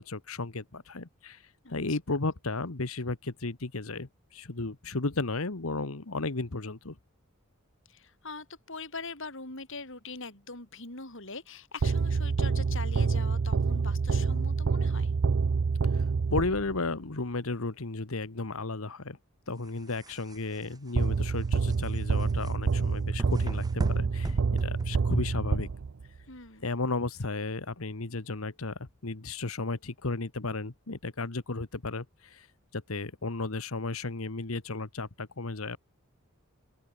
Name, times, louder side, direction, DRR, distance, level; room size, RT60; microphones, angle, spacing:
voice 1, 0.0-1.4 1.7-7.0 15.9-16.0 16.3-19.2 19.5-25.7 26.6-32.5 32.7-35.8, left 3 dB, 80° left, 1.4 m, -34 dB
voice 2, 1.6-2.0 7.9-15.1 26.3-26.8, left 4 dB, 65° left, 7.7 m, -42 dB
sound 1, 11.8-16.9 21.0-26.2, right 4 dB, 65° right, 0.5 m, -27 dB
sound 2, 19.5-25.4, equal, 20° right, 3.0 m, -42 dB
open air
head